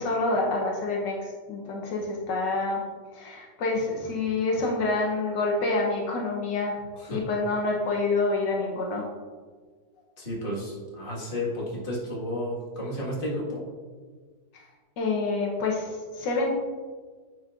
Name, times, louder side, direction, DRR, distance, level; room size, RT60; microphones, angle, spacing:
voice 1, 0.0-2.8 3.1-6.8 7.1-9.0 14.5-14.6 15.0-16.5, left 3 dB, 80° left, -1 dB, 1.5 m, -27 dB
voice 2, 10.2-13.6, left 1 dB, 30° left, -5 dB, 1.8 m, -32 dB
9.0 x 5.2 x 2.5 m, 1.5 s
omnidirectional pair, 1.9 m